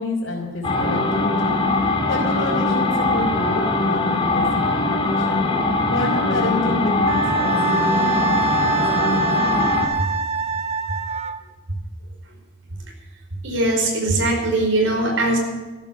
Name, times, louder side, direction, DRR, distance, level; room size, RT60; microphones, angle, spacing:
voice 1, 0.0-1.6 2.1-5.5 5.9-9.4, left 2 dB, 75° left, -4 dB, 3.6 m, -29 dB
sound 1, 0.6-9.9, left 2 dB, 25° left, 2.5 m, -21 dB
Wind instrument woodwind instrument, 7.1-11.4, right 5 dB, 35° right, 0.9 m, -24 dB
voice 2, 13.4-15.4, right 2 dB, 70° right, 2 dB, 4.8 m, -20 dB
13.5 x 13.0 x 6.2 m, 1.3 s
head